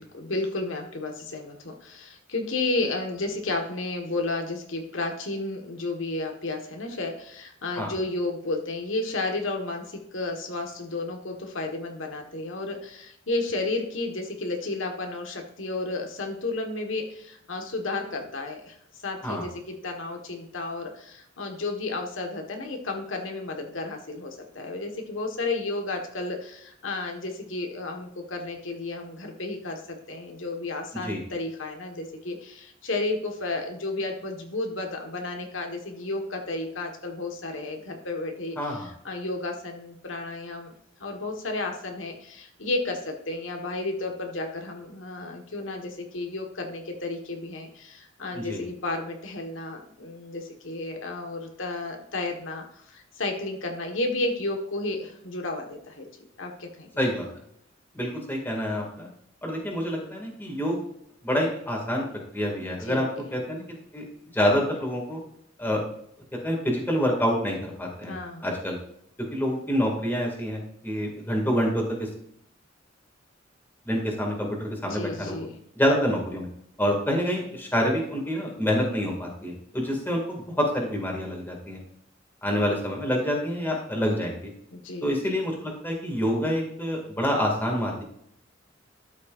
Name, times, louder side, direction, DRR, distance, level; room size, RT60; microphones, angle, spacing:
voice 1, 0.1-18.8 19.0-40.7 41.0-56.1 56.4-56.9 62.8-63.0 68.1-68.5 74.9-75.6 84.7-85.2, left 2 dB, 85° left, 3 dB, 1.5 m, -32 dB
voice 2, 38.6-38.9 48.3-48.6 57.0-57.3 57.9-59.1 59.4-60.8 61.2-62.0 62.3-63.1 63.3-64.0 64.3-65.2 65.6-65.8 66.4-68.2 68.4-68.8 69.3-72.1 73.9-75.4 75.8-76.5 76.8-81.8 82.4-84.5 85.0-88.0, equal, 10° left, -1 dB, 2.2 m, -27 dB
12.5 x 6.4 x 2.5 m, 0.70 s
head